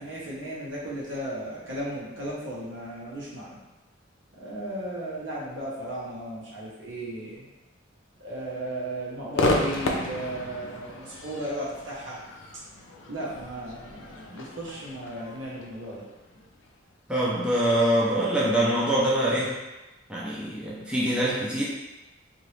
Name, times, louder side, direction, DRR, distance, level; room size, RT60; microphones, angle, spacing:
voice 1, 0.0-3.6 4.4-7.5 8.2-12.2 13.1-16.0, right 1 dB, 70° right, -6 dB, 1.0 m, -35 dB
Crowd / Fireworks, 9.3-16.7, left 2 dB, 75° left, 0.5 m, -32 dB
voice 2, 17.1-19.6 20.1-21.6, right 1 dB, 5° right, -7 dB, 0.5 m, -24 dB
2.9 x 2.6 x 3.2 m, 1.1 s
head